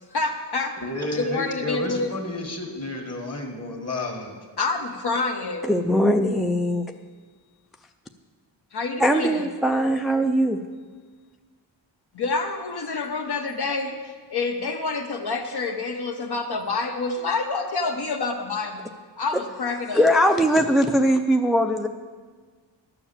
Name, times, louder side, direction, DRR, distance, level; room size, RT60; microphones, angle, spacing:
voice 1, 0.1-0.8 1.1-2.1 4.6-5.7 8.7-9.5 12.1-20.2, left 3 dB, 55° left, 3 dB, 0.9 m, -28 dB
voice 2, 0.8-4.4, left 2 dB, 35° left, 3 dB, 1.8 m, -31 dB
voice 3, 5.6-6.8 9.0-10.6 19.9-21.9, equal, ahead, 5 dB, 0.3 m, -20 dB
12.0 x 7.0 x 7.2 m, 1.5 s
wide cardioid pair, 120°, 46 cm